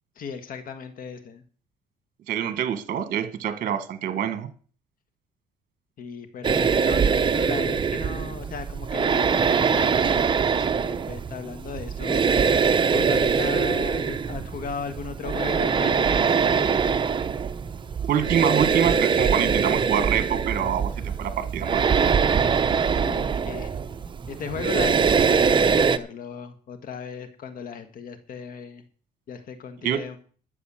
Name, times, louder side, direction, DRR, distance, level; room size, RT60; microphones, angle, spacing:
voice 1, 0.1-1.4 6.0-12.3 12.9-17.1 22.9-23.7 24.3-28.8 29.3-30.2, left 6 dB, 55° left, 9 dB, 1.6 m, -36 dB
voice 2, 2.3-4.5 18.0-21.8 29.8-30.0, right 9 dB, 55° right, 10 dB, 1.5 m, -25 dB
sound 1, 6.4-26.0, right 6 dB, 30° right, 0.8 m, -23 dB
12.5 x 7.2 x 7.5 m, 0.43 s
cardioid pair, 110°, 17 cm